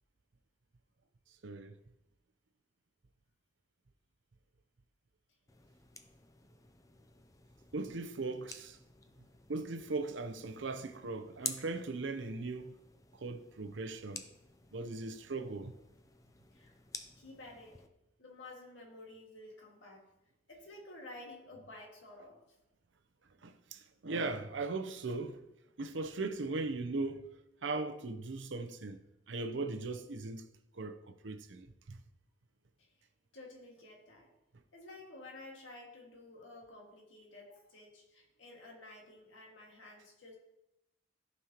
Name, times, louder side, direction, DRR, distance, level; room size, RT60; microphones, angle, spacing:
voice 1, 1.4-1.8 7.7-8.8 9.5-12.8 13.1-14.2 14.7-15.8 23.4-25.4 25.8-27.3 27.6-30.5 30.7-32.0, right 3 dB, 70° right, 0.7 m, -39 dB
sound 1, 5.5-17.9, left 4 dB, 15° left, 0.5 m, -50 dB
voice 2, 17.2-17.8 18.2-20.0 20.5-22.6 32.8-33.1 33.3-34.3 34.7-40.3, left 2 dB, 75° left, 1.9 m, -52 dB
14.0 x 5.4 x 2.9 m
head